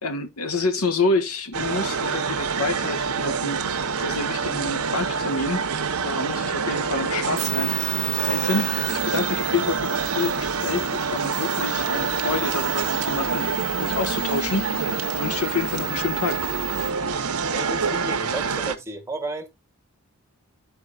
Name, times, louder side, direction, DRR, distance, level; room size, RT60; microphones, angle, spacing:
voice 1, 0.0-3.7 4.0-5.7 6.0-13.5 13.8-16.4, left 3 dB, 75° left, 1.4 m, -28 dB
sound 1, 1.5-18.8, right 5 dB, 75° right, 0.9 m, -26 dB
sound 2, 7.3-16.9, right 14 dB, 30° right, 0.8 m, -33 dB
voice 2, 17.5-19.5, right 2 dB, 15° right, 1.6 m, -32 dB
14.0 x 4.7 x 2.4 m
head